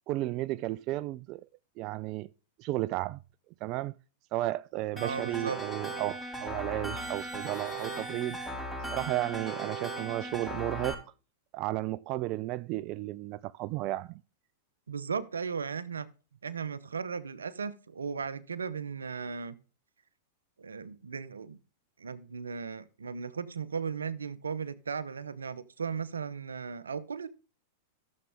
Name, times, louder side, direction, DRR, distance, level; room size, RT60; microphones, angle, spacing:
voice 1, 0.1-1.4 1.8-2.3 2.6-3.2 3.6-3.9 4.3-8.4 8.9-11.0 11.5-14.2, right 17 dB, 45° right, 0.4 m, -33 dB
voice 2, 4.9-5.6 14.9-16.1 16.4-19.6 20.6-21.6 22.0-27.3, right 6 dB, 85° right, 0.9 m, -36 dB
sound 1, 5.0-10.9, right 1 dB, 5° left, 5.8 m, -38 dB
13.5 x 7.4 x 3.6 m
hypercardioid pair, 105°, 0 cm